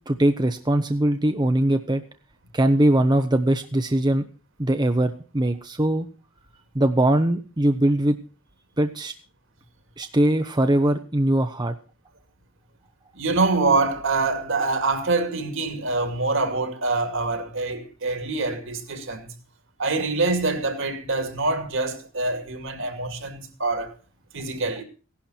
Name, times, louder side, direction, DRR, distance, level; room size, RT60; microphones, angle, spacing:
voice 1, 0.1-2.0 2.5-4.2 4.6-6.1 6.7-8.2 8.8-9.1 10.0-11.7, right 1 dB, 20° right, 0.7 m, -21 dB
voice 2, 13.1-19.3 19.8-23.9 24.3-24.8, right 3 dB, 60° right, 2.5 m, -25 dB
17.0 x 11.5 x 4.4 m
head